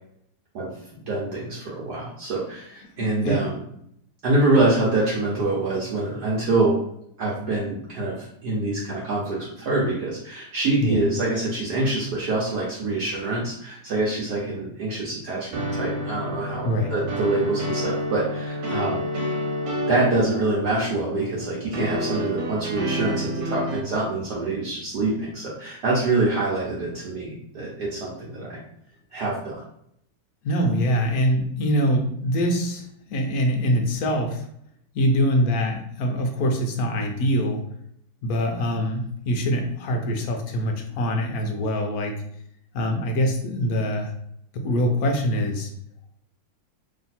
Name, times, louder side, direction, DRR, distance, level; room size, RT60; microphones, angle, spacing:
voice 1, 1.1-3.6 4.2-6.8 7.2-19.1 19.9-28.6 29.1-29.6, right 2 dB, 60° right, -6 dB, 1.3 m, -25 dB
voice 2, 3.0-3.4 10.8-11.0 16.6-16.9 30.4-34.5 34.9-37.6 38.2-42.2 42.7-44.1 44.5-45.7, equal, 65° left, 2 dB, 0.9 m, -24 dB
sound 1, 15.5-23.8, equal, 90° right, 1.6 m, -29 dB
3.2 x 2.7 x 4.2 m, 0.72 s
omnidirectional pair, 2.1 m